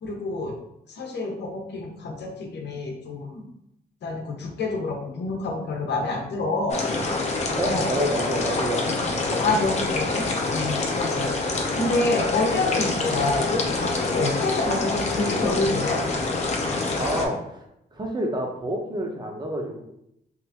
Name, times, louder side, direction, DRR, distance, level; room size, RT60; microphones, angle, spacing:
voice 1, 0.0-0.5 0.9-3.4 4.0-7.2 7.6-7.9 9.4-10.2 10.5-16.0, left 2 dB, 75° left, 1 dB, 0.8 m, -27 dB
sound 1, 6.7-17.3, left 3 dB, 40° left, 0.6 m, -26 dB
voice 2, 7.6-9.6 16.9-19.8, right 1 dB, 25° right, 1 dB, 0.7 m, -29 dB
3.0 x 2.5 x 3.4 m, 0.79 s
cardioid pair, 120°, 18 cm